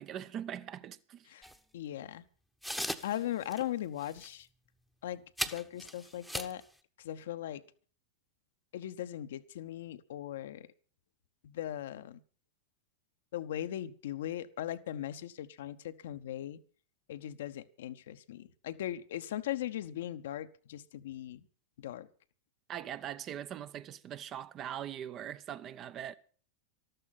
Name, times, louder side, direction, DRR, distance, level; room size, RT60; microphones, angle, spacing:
voice 1, 0.0-1.3 22.7-26.2, right 10 dB, 30° right, 0.7 m, -41 dB
sound 1, 1.4-1.6 2.6-3.2 3.5-3.6 4.0-4.3 5.4-6.6, equal, ahead, 1.0 m, -38 dB
voice 2, 1.7-2.2 3.0-4.5 5.0-6.6 7.0-7.6 8.7-10.7 11.4-12.2 13.3-16.6 17.1-21.4 21.8-22.1, left 12 dB, 60° left, 0.8 m, -39 dB
13.5 x 13.0 x 5.6 m
figure-of-eight pair, 90°, 0 cm